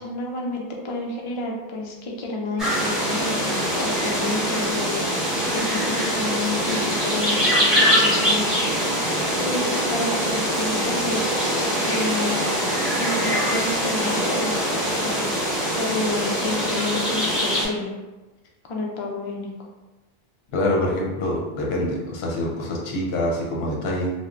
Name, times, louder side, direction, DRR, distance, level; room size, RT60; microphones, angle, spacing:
voice 1, 0.0-3.5 3.8-8.8 9.4-11.4 11.8-12.4 12.9-15.5 15.8-17.9 18.6-19.5, left 2 dB, 60° left, 0 dB, 0.3 m, -30 dB
sound 1, 2.6-17.6, equal, ahead, 0.6 m, -23 dB
voice 2, 20.5-24.1, left 1 dB, 75° left, -2 dB, 0.8 m, -25 dB
3.1 x 2.0 x 2.4 m, 1.1 s
omnidirectional pair, 1.1 m